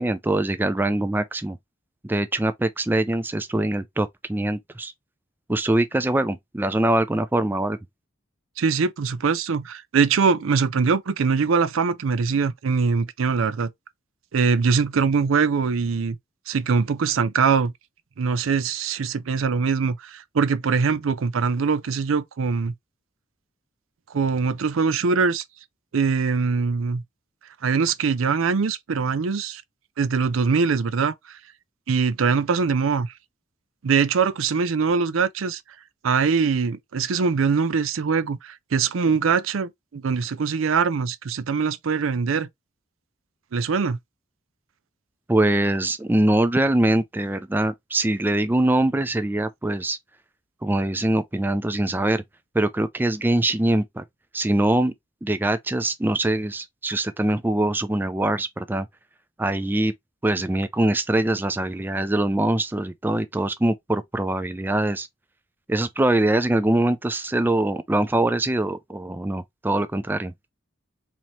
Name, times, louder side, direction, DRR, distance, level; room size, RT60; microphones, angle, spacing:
voice 1, 0.0-1.6 2.0-4.9 5.5-7.8 45.3-50.0 50.6-52.2 52.5-54.0 54.3-54.9 55.2-58.9 59.4-59.9 60.2-65.1 65.7-70.3, right 1 dB, 10° right, 0.3 m, -23 dB
voice 2, 8.6-13.7 14.3-16.2 16.5-17.7 18.2-22.7 24.1-25.4 25.9-27.0 27.6-29.6 30.0-31.4 31.9-33.1 33.8-35.6 36.0-42.5 43.5-44.0, right 5 dB, 80° right, 0.5 m, -22 dB
4.1 x 2.9 x 2.9 m
head